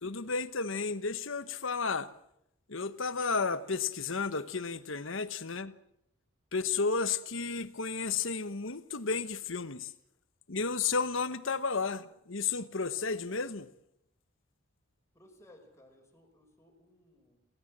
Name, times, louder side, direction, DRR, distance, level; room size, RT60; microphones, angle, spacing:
voice 1, 0.0-2.1 2.7-5.7 6.5-9.9 10.5-13.7, left 4 dB, 65° left, 1.2 m, -32 dB
voice 2, 15.1-17.4, left 1 dB, 15° left, 5.3 m, -60 dB
28.0 x 16.5 x 7.6 m
head